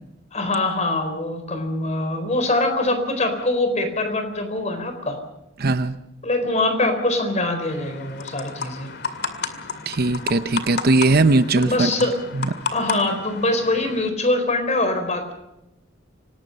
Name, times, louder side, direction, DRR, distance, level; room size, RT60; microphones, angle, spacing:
voice 1, 0.3-5.2 6.2-8.9 11.6-12.2 12.7-15.3, left 2 dB, 35° left, 7 dB, 4.3 m, -23 dB
voice 2, 5.6-6.0 9.9-11.9 12.3-12.5, right 3 dB, 50° right, 11 dB, 0.8 m, -19 dB
sound 1, 7.6-14.1, left 5 dB, 55° left, 2.3 m, -32 dB
26.5 x 19.0 x 5.5 m, 0.87 s
head